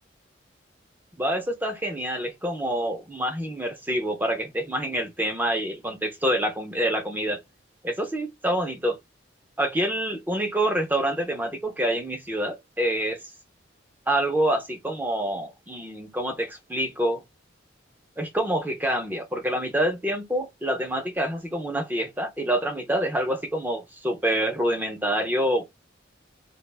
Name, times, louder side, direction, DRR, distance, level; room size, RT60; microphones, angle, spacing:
voice 1, 1.2-7.4 7.8-9.0 9.6-13.2 14.1-17.2 18.2-25.7, right 1 dB, 10° right, 0.4 m, -27 dB
2.3 x 2.0 x 3.2 m
head